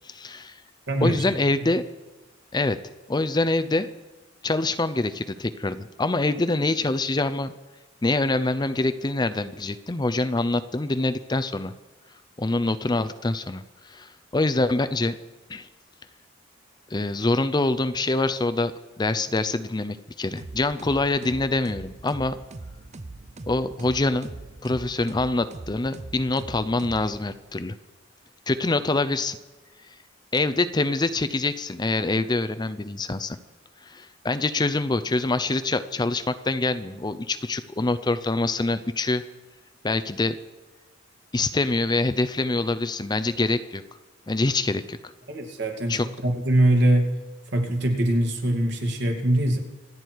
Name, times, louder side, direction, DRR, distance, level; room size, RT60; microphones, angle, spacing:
voice 1, 0.0-0.6 1.0-1.8 2.5-2.8 3.1-3.9 4.4-7.5 8.0-11.7 12.4-15.2 15.5-15.7 16.9-18.7 19.0-22.4 23.5-24.3 24.6-27.7 28.5-29.4 30.3-33.4 33.8-39.2 39.8-40.3 41.3-43.8 44.3-45.1 45.9-46.1, left 2 dB, 20° left, 12 dB, 0.5 m, -25 dB
voice 2, 0.9-1.2 45.3-46.0 46.2-47.1 47.5-49.6, right 1 dB, 60° right, 3 dB, 2.5 m, -22 dB
sound 1, 20.4-27.5, right 2 dB, 35° right, 0.7 m, -41 dB
26.0 x 9.7 x 4.7 m, 1.1 s
head